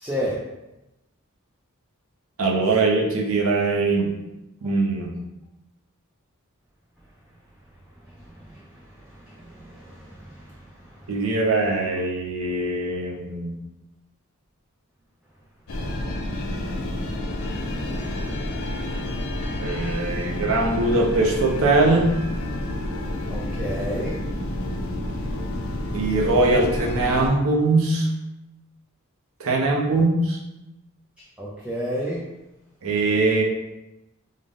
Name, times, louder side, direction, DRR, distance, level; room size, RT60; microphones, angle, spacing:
voice 1, 0.0-0.4 23.3-24.1 31.4-32.2, equal, 5° right, -5 dB, 0.4 m, -28 dB
voice 2, 2.4-4.1 4.6-5.1 11.1-13.6 19.6-22.1 25.9-28.1 29.4-30.4 32.8-33.4, right 2 dB, 75° right, 0 dB, 0.6 m, -21 dB
sound 1, 15.7-27.3, left 1 dB, 75° left, 0.5 m, -29 dB
3.7 x 2.0 x 3.5 m, 0.98 s
head